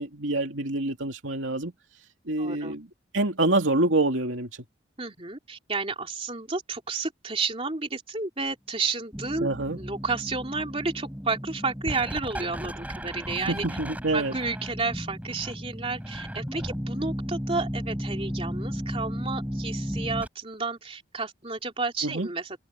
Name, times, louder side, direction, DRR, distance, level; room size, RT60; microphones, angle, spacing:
voice 1, 0.0-1.7 2.3-2.9 3.1-4.5 9.4-9.8 13.5-14.3 22.0-22.3, right 2 dB, 85° right, 2.7 m, -26 dB
voice 2, 2.4-2.7 5.0-9.5 9.8-13.6 14.1-22.6, right 4 dB, 30° right, 3.1 m, -31 dB
sound 1, 9.1-20.3, equal, 10° right, 5.1 m, -34 dB
head